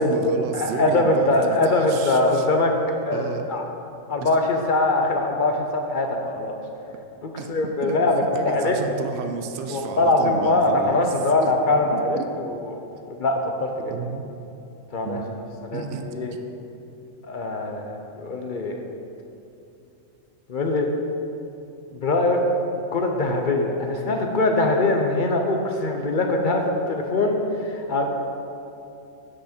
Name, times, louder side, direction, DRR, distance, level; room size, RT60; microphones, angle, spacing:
voice 1, 0.0-2.5 3.1-3.5 4.2-4.3 7.4-8.0 8.3-11.1 11.4-11.5 11.9-12.2 13.9-14.2 15.0-15.4 15.7-16.0, right 5 dB, 60° right, 6 dB, 0.8 m, -31 dB
voice 2, 0.5-2.7 3.1-3.6 4.1-6.6 7.2-8.8 9.7-13.9 14.9-15.2 15.7-16.3 17.2-18.8 20.5-20.9 21.9-22.4 22.9-28.0, left 2 dB, 50° left, 3 dB, 0.7 m, -22 dB
9.3 x 6.0 x 4.3 m, 2.8 s
omnidirectional pair, 1.4 m